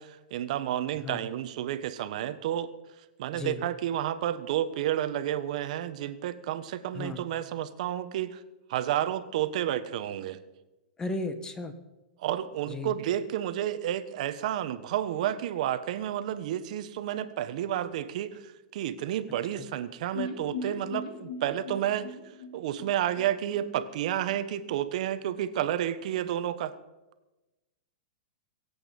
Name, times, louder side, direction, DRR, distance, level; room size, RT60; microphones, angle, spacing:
voice 1, 0.0-2.7 3.2-8.4 8.7-10.4 12.2-22.1 22.5-26.7, right 11 dB, 60° right, 11 dB, 1.3 m, -31 dB
voice 2, 11.0-11.7 12.7-12.9 19.6-19.7, left 2 dB, 15° left, 10 dB, 1.5 m, -35 dB
sound 1, 20.1-24.0 24.3-24.4 24.7-24.8, left 3 dB, 55° left, 3.7 m, -39 dB
23.5 x 8.6 x 5.5 m, 1.1 s
hypercardioid pair, 145°, 4 cm